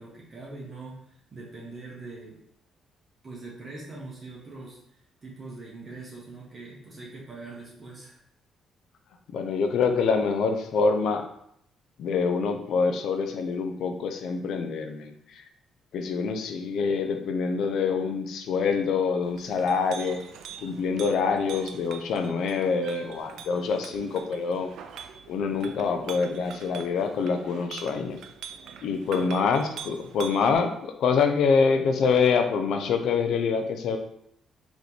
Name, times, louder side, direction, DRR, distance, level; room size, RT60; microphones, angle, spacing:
voice 1, 0.0-2.4 3.2-4.8 5.2-8.2 29.1-29.3, right 3 dB, 40° right, -5 dB, 1.2 m, -42 dB
voice 2, 9.3-11.3 12.0-15.4 15.9-20.2 20.6-24.7 25.3-28.2 28.8-34.0, left 5 dB, 75° left, 6 dB, 0.5 m, -25 dB
Chink clink, 19.2-30.6, right 7 dB, 80° right, 0.4 m, -44 dB
3.9 x 3.0 x 3.4 m, 0.73 s
cardioid pair, 90°, 0 cm